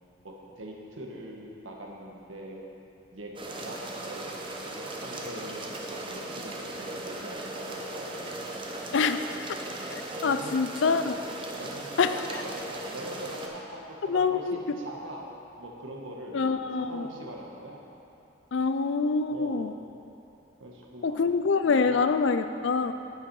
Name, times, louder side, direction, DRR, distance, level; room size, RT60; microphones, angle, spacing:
voice 1, 0.2-2.7 3.1-3.3 3.6-4.2 4.6-8.6 10.2-10.6 11.0-11.2 11.5-15.2 15.6-17.8 19.3-19.7 20.6-21.2 21.8-22.1 22.8-22.9, right 1 dB, 85° right, -1 dB, 1.4 m, -42 dB
sound 1, 3.4-13.5, right 1 dB, 25° right, 0.9 m, -38 dB
voice 2, 8.9-9.2 9.5-9.6 9.9-11.1 12.0-12.2 14.1-14.8 16.3-17.1 18.5-19.7 21.0-22.9, left 4 dB, 65° left, 10 dB, 0.4 m, -26 dB
9.8 x 8.2 x 4.8 m, 3.0 s
head